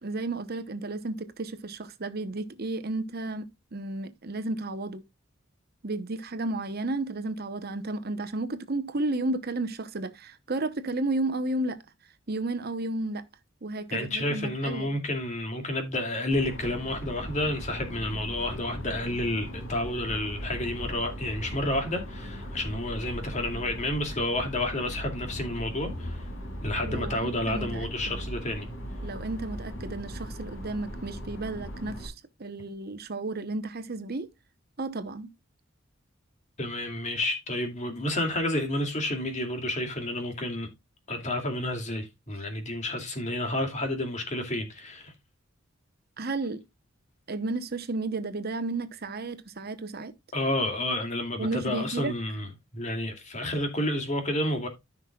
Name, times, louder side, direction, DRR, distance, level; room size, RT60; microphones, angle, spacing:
voice 1, 0.0-5.0 5.8-11.8 12.3-13.2 13.6-14.9 26.8-28.3 29.0-32.1 32.4-34.3 34.8-35.3 46.2-46.6 47.3-50.1 51.4-52.1, right 2 dB, 50° right, 0.9 m, -32 dB
voice 2, 13.9-26.3 26.6-28.7 36.6-40.7 41.1-45.1 50.3-52.5 52.7-54.7, left 1 dB, 35° left, 2.5 m, -30 dB
sound 1, 16.3-32.1, equal, 80° left, 2.8 m, -38 dB
14.0 x 6.0 x 2.3 m
head